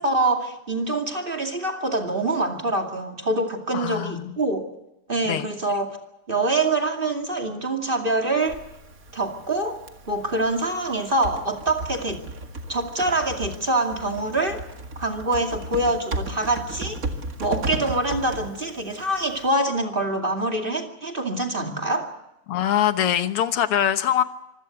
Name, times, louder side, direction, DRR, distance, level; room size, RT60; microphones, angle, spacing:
voice 1, 0.0-4.6 5.1-6.0 6.3-8.6 9.1-9.8 10.1-12.2 12.7-14.6 15.0-17.0 17.4-22.1, right 2 dB, 25° right, 3 dB, 2.5 m, -25 dB
voice 2, 3.7-4.4 5.3-5.5 22.5-24.2, left 10 dB, 90° left, 10 dB, 2.1 m, -23 dB
Typing, 8.4-19.5, right 2 dB, 40° right, 2.2 m, -35 dB
25.0 x 16.5 x 8.1 m, 0.88 s
omnidirectional pair, 2.4 m